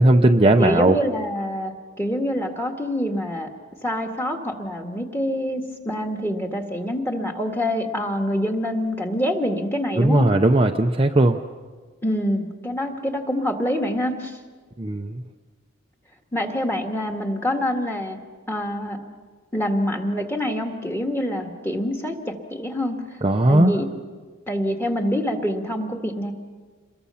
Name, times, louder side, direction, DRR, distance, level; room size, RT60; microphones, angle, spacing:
voice 1, 0.0-1.0 10.0-11.4 14.8-15.2 23.2-23.7, right 1 dB, 25° right, 3 dB, 0.6 m, -17 dB
voice 2, 0.6-1.7 2.0-3.5 3.8-10.3 12.0-14.4 16.3-18.2 18.5-19.0 19.5-23.0 23.5-23.9 24.5-26.3, equal, 10° left, 2 dB, 1.9 m, -26 dB
28.0 x 22.5 x 5.7 m, 1.5 s
head